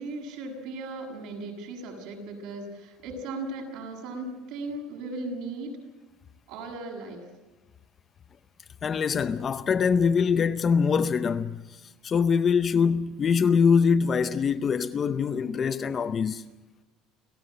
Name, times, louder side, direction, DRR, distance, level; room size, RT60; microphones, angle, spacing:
voice 1, 0.0-5.8 6.5-7.2, right 2 dB, 60° right, 7.4 m, -37 dB
voice 2, 8.8-11.6 12.0-16.4, left 6 dB, 20° left, 0.6 m, -23 dB
29.5 x 15.0 x 7.8 m
cardioid pair, 175°, 0 cm